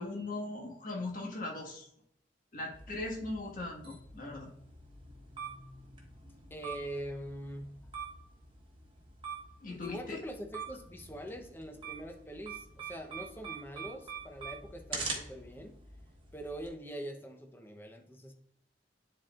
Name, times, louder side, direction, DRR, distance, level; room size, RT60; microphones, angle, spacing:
voice 1, 0.0-1.9 2.5-4.5 9.6-10.2, left 2 dB, 50° left, -1 dB, 1.6 m, -39 dB
sound 1, 2.7-16.7, right 5 dB, 30° right, 1.3 m, -45 dB
voice 2, 6.5-7.8 9.7-15.8 16.3-18.3, right 1 dB, 10° left, 3 dB, 0.8 m, -43 dB
10.0 x 4.3 x 2.4 m, 0.72 s
head